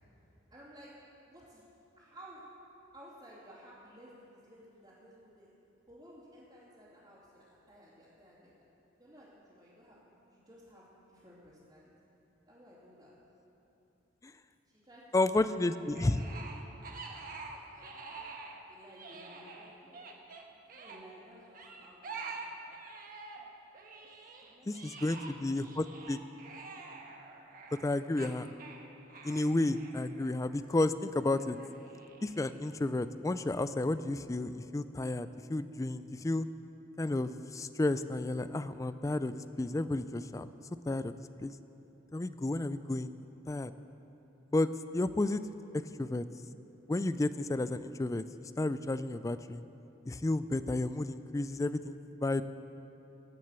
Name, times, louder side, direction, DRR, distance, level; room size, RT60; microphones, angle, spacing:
voice 1, 0.5-0.9 1.2-1.7 1.9-2.4 2.9-5.5 5.9-8.5 9.0-10.0 10.3-11.9 12.5-13.1 14.8-16.2 17.5-18.3 18.6-20.2 20.7-22.4 24.4-25.5, equal, 25° right, -12 dB, 2.7 m, -56 dB
voice 2, 15.1-16.2 24.7-26.2 27.7-28.5 29.2-31.6 32.2-36.5 37.0-40.5 40.9-41.1 41.4-41.5 42.1-43.1 43.5-43.7 44.5-45.4 46.0-46.2 46.9-49.6 50.1-52.4, left 2 dB, 15° left, 13 dB, 0.3 m, -32 dB
sound 1, 15.9-18.6 18.9-21.0 21.5-23.5 23.7-30.7 31.4-32.7, right 4 dB, 45° right, 1.2 m, -47 dB
17.5 x 6.4 x 8.1 m, 3.0 s
head